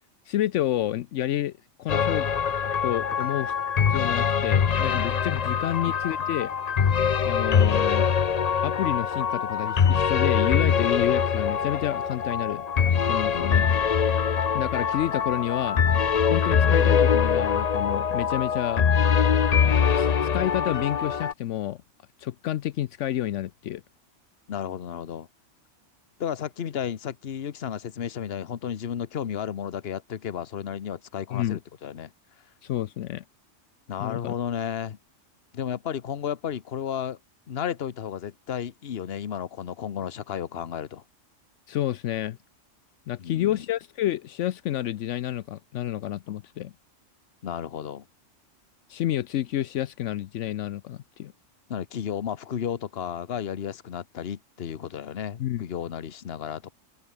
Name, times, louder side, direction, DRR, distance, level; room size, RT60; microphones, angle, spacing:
voice 1, 0.3-1.5 1.8-2.3 2.8-3.5 3.9-6.5 7.2-8.1 8.6-12.6 13.1-13.7 14.5-15.8 16.3-18.9 19.7-21.8 22.2-23.8 31.3-31.6 32.6-33.2 34.0-34.4 41.7-42.4 43.1-46.7 48.9-51.3 55.4-55.6, left 12 dB, 80° left, 0.9 m, -29 dB
sound 1, 1.9-21.3, left 7 dB, 40° left, 0.7 m, -23 dB
voice 2, 4.8-5.2 13.3-13.6 24.5-25.3 26.2-32.1 33.9-35.0 35.5-37.2 37.5-41.0 43.2-43.6 47.4-48.0 51.7-56.7, left 8 dB, 55° left, 1.1 m, -33 dB
omnidirectional pair, 1.3 m